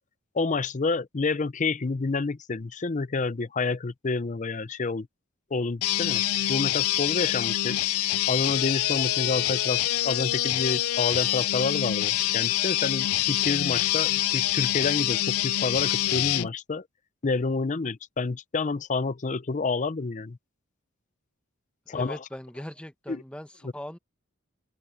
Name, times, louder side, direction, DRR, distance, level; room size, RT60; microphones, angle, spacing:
voice 1, 0.3-5.1 5.5-6.2 6.5-7.8 8.3-16.8 17.2-20.4 21.9-22.2 23.1-23.2, left 4 dB, 35° left, 0.5 m, -29 dB
sound 1, 5.8-16.5, left 14 dB, 80° left, 0.4 m, -26 dB
voice 2, 21.9-24.0, equal, 5° left, 1.2 m, -40 dB
head